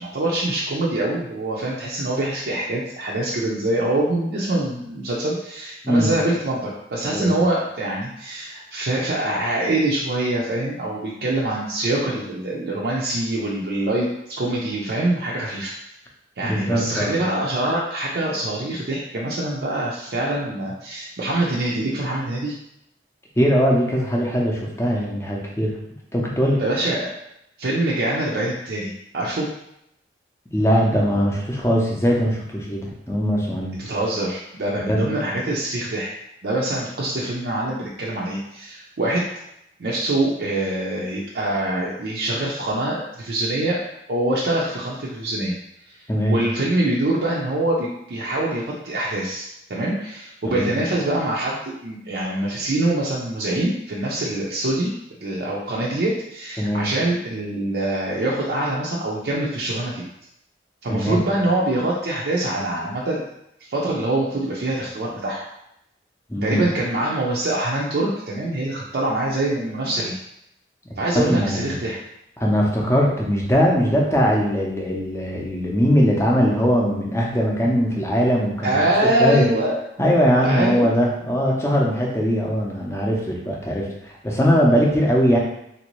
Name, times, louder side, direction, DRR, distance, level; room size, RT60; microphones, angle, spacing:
voice 1, 0.0-15.7 16.4-22.5 26.6-27.1 27.6-29.5 33.8-36.1 36.4-39.3 39.8-45.6 45.9-46.0 46.3-54.9 55.2-60.1 60.8-63.3 63.7-65.4 66.4-70.2 71.0-72.0 78.6-80.1 80.4-80.9, right 1 dB, 65° right, -4 dB, 0.5 m, -24 dB
voice 2, 16.4-17.2 23.4-25.8 26.1-26.6 30.5-33.8 34.9-35.0 46.1-46.4 50.4-50.7 56.6-56.8 60.9-61.2 66.3-66.6 71.2-71.7 72.4-79.5 80.0-85.4, equal, 15° left, -2 dB, 0.5 m, -20 dB
3.3 x 2.6 x 3.0 m, 0.79 s
head